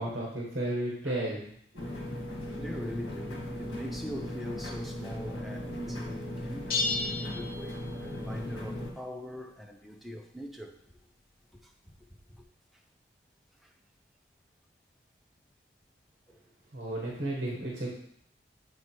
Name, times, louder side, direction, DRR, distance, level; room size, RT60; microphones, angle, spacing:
voice 1, 0.0-1.4 16.7-17.9, right 1 dB, 50° right, -4 dB, 1.4 m, -33 dB
sound 1, 1.8-8.9, left 1 dB, 80° left, 1.6 m, -38 dB
voice 2, 2.6-6.7 7.1-10.7 11.6-11.9 12.3-12.4 16.3-16.4, equal, ahead, 2 dB, 0.5 m, -42 dB
sound 2, 6.7-8.3, left 4 dB, 50° left, 0.9 m, -33 dB
8.1 x 3.3 x 4.5 m, 0.69 s
head